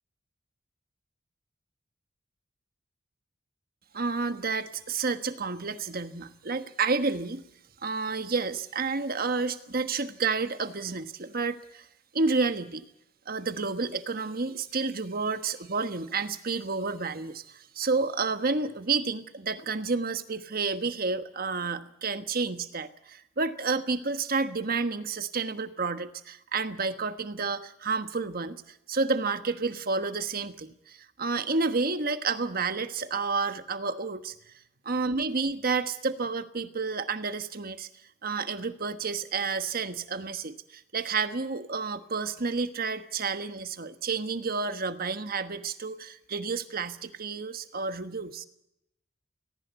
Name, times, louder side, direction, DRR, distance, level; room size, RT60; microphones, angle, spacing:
voice 1, 3.9-7.4 7.8-11.9 12.1-12.9 13.3-34.3 34.8-37.9 38.2-48.5, right 4 dB, 50° right, 10 dB, 1.3 m, -30 dB
19.0 x 18.0 x 8.1 m, 0.79 s
head